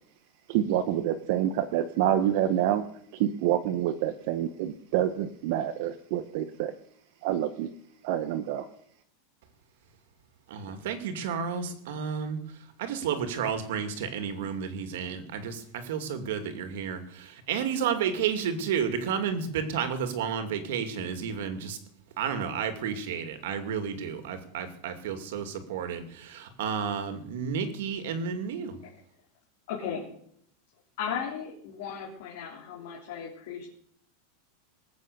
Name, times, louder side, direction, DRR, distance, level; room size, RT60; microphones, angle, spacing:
voice 1, 0.5-2.8 3.1-6.7 7.2-7.7 8.0-8.6, right 11 dB, 50° right, 9 dB, 0.9 m, -27 dB
voice 2, 10.5-12.4 12.8-21.8 22.2-28.8, right 7 dB, 65° right, 8 dB, 2.5 m, -31 dB
voice 3, 29.7-30.1 31.0-33.7, left 7 dB, 60° left, -2 dB, 3.5 m, -36 dB
20.5 x 8.2 x 6.8 m, 0.67 s
supercardioid pair, 165°, 0 cm